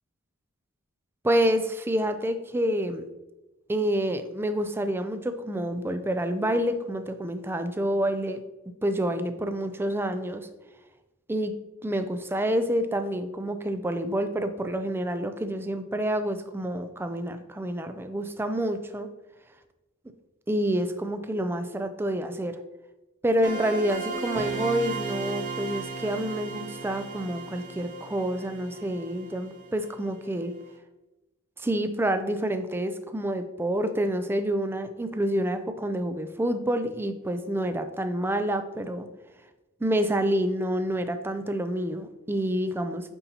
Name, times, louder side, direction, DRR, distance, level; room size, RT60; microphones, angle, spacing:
voice 1, 1.2-3.0 3.7-8.4 8.8-10.5 11.3-11.5 11.8-19.1 20.5-22.6 23.2-30.5 31.6-39.1 39.8-43.1, right 1 dB, 10° right, 9 dB, 0.3 m, -28 dB
sound 1, 23.4-30.1, right 4 dB, 35° right, 1.1 m, -36 dB
8.9 x 4.1 x 2.8 m, 1.0 s
head